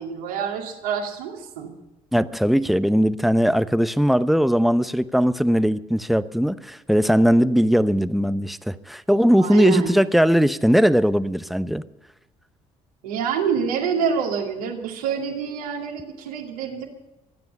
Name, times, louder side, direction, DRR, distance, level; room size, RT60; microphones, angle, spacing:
voice 1, 0.0-1.7 9.4-9.9 13.0-16.8, right 7 dB, 85° right, 1 dB, 2.4 m, -26 dB
voice 2, 2.1-11.8, equal, ahead, 13 dB, 0.9 m, -19 dB
25.0 x 9.5 x 5.4 m, 0.98 s
hypercardioid pair, 50°, 19 cm